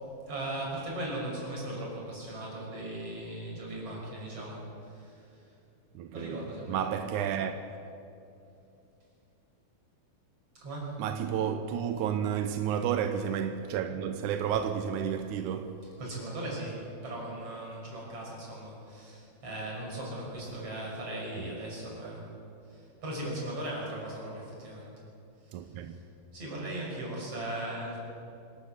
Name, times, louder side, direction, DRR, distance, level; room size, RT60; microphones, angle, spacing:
voice 1, 0.3-5.4 6.1-7.4 10.6-10.9 15.8-22.3 22.7-24.9 25.6-26.0 26.3-28.0, right 1 dB, 40° right, 6.7 m, -38 dB
voice 2, 6.0-7.6 11.0-15.9 25.5-25.9, right 8 dB, 75° right, 1.9 m, -31 dB
26.0 x 12.0 x 8.4 m
omnidirectional pair, 4.3 m